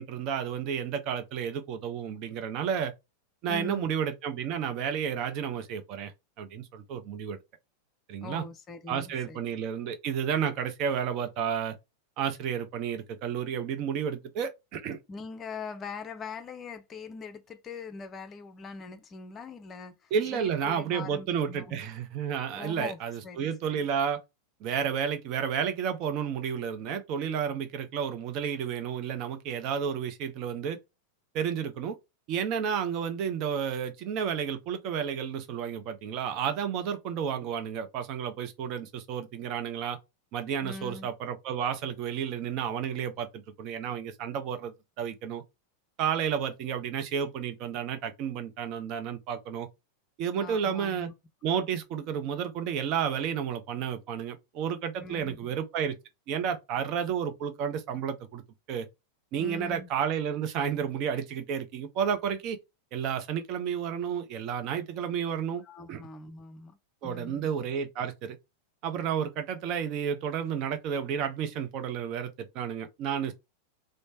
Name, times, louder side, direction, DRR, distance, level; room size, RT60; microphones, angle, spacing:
voice 1, 0.0-2.9 3.4-6.1 6.4-7.4 8.1-8.4 8.9-11.8 12.2-15.0 20.1-24.2 24.6-30.8 31.3-32.0 32.3-40.0 40.3-45.4 46.0-49.7 50.2-51.1 51.4-56.0 56.3-58.4 58.7-58.9 59.3-62.6 62.9-65.6 65.9-66.0 67.0-68.4 68.8-73.3, right 8 dB, 40° right, 0.7 m, -31 dB
voice 2, 3.5-3.9 8.2-9.4 15.1-21.8 22.6-23.0 23.2-23.9 40.6-41.1 50.3-51.1 55.0-55.4 59.4-59.9 65.6-66.8 67.0-67.5, left 4 dB, 25° left, 0.6 m, -42 dB
3.2 x 2.1 x 4.2 m
figure-of-eight pair, 90°, 0 cm